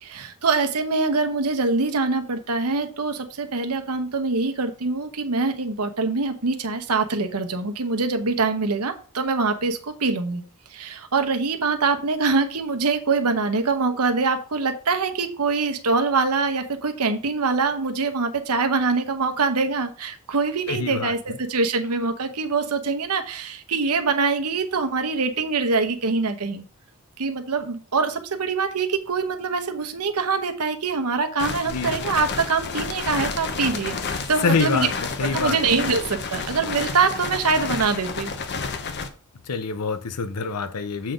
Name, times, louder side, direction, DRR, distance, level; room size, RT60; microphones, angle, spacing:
voice 1, 0.0-10.4 10.7-26.6 27.2-34.0 34.3-34.9 35.3-38.3, right 4 dB, 80° right, 1.0 m, -24 dB
voice 2, 20.7-21.1 31.7-32.0 34.4-35.6 35.9-36.0 39.5-41.1, left 5 dB, 85° left, 0.6 m, -26 dB
sound 1, 31.4-39.1, left 4 dB, 50° left, 0.8 m, -30 dB
7.5 x 3.8 x 5.1 m
head